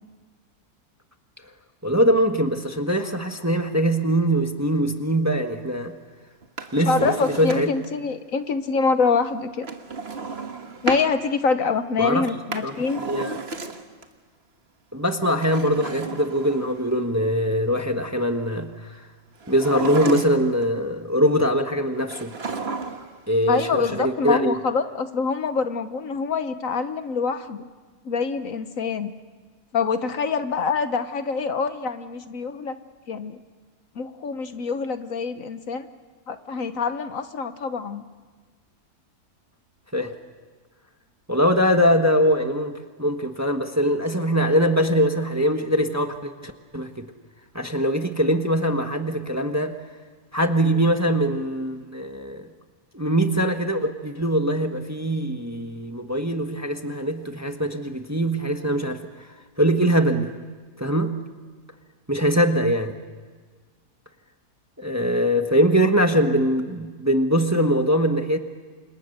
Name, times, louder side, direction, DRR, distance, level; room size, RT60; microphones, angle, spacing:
voice 1, 1.8-5.9 6.7-7.7 12.0-12.2 12.6-12.7 13.0-13.4 14.9-19.0 19.5-22.3 23.3-24.5 39.9-40.1 41.3-42.7 43.0-47.1 47.5-49.8 50.3-52.5 52.9-59.0 59.6-60.3 60.8-61.2 62.1-63.0 64.8-68.4, equal, 10° right, 5 dB, 1.2 m, -22 dB
Drawer open or close, 6.4-7.9 9.6-11.1 12.3-14.0 15.3-17.0 19.4-20.6 22.1-23.2 23.4-23.5, right 3 dB, 40° right, 1.7 m, -33 dB
voice 2, 6.9-9.7 10.8-13.0 23.5-27.7 28.0-29.1 29.7-32.8 33.1-33.4 34.0-35.9 36.3-38.0, left 5 dB, 60° left, 10 dB, 1.3 m, -25 dB
29.5 x 26.5 x 6.7 m, 1.5 s
omnidirectional pair, 1.7 m